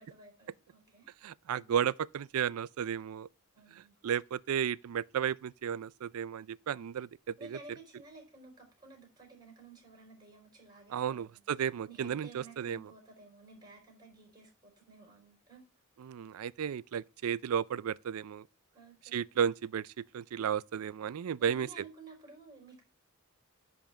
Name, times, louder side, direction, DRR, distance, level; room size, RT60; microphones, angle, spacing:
voice 1, 0.0-1.1 3.5-4.0 7.4-11.4 11.9-15.7 18.7-19.2 21.4-22.8, right 3 dB, 20° right, 4.3 m, -54 dB
voice 2, 1.2-3.3 3.7-7.1 7.5-7.6 10.9-12.9 16.0-18.5 19.1-21.8, right 8 dB, 70° right, 0.4 m, -33 dB
10.5 x 3.5 x 7.3 m
head